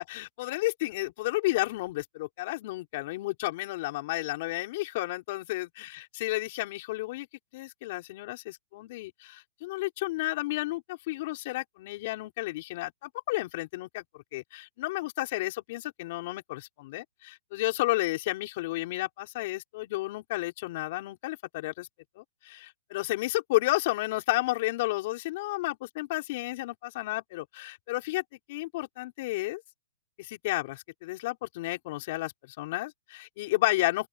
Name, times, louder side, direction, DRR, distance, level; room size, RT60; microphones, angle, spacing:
voice 1, 0.0-7.3 7.5-21.9 22.1-28.2 28.5-29.6 30.2-34.1, left 19 dB, 40° left, 5.1 m, -32 dB
open air
hypercardioid pair, 165°, 0 cm